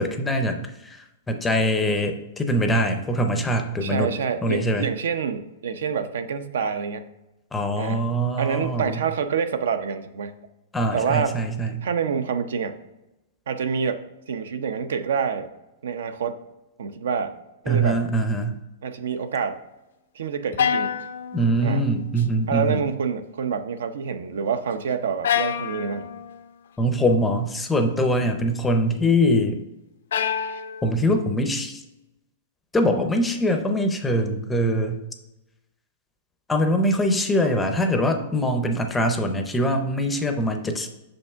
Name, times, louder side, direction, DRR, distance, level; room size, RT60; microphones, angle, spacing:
voice 1, 0.0-4.1 4.4-4.9 7.5-9.0 10.7-11.9 17.7-18.6 21.3-22.8 26.8-29.6 30.8-31.8 32.7-35.0 36.5-40.9, equal, 5° left, 6 dB, 0.5 m, -23 dB
voice 2, 3.8-7.0 7.8-8.1 8.4-10.4 10.9-11.4 11.8-12.7 13.5-14.0 14.3-15.5 15.8-16.4 16.8-17.3 17.6-18.0 18.8-19.6 20.1-21.0 21.6-21.8 22.5-26.1, right 6 dB, 80° right, 10 dB, 0.7 m, -27 dB
sound 1, 20.6-22.2 22.6-23.1 25.2-26.5 30.1-31.2, left 8 dB, 80° left, 0.5 m, -28 dB
6.6 x 5.4 x 3.5 m, 0.96 s
supercardioid pair, 170°, 0 cm